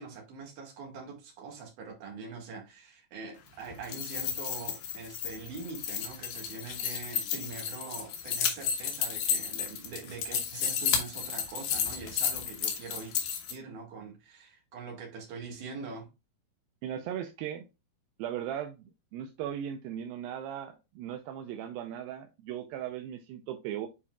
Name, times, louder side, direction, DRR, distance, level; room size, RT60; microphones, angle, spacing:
voice 1, 0.0-13.1 13.5-16.1, right 4 dB, 65° right, 3.2 m, -43 dB
sound 1, 3.7-13.5, left 8 dB, 75° left, 2.7 m, -32 dB
voice 2, 16.8-17.7 18.2-23.9, right 10 dB, 85° right, 2.4 m, -38 dB
9.6 x 4.3 x 2.3 m
omnidirectional pair, 4.1 m